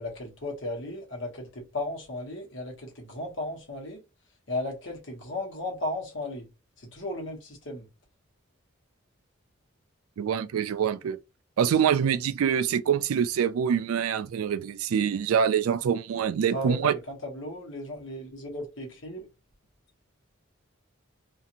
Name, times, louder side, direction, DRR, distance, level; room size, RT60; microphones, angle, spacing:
voice 1, 0.0-4.0 4.5-6.5 6.8-7.9 16.5-19.3, left 1 dB, 60° left, 1.1 m, -35 dB
voice 2, 10.2-11.2 11.6-16.9, right 8 dB, 80° right, 0.3 m, -25 dB
2.8 x 2.5 x 2.5 m
head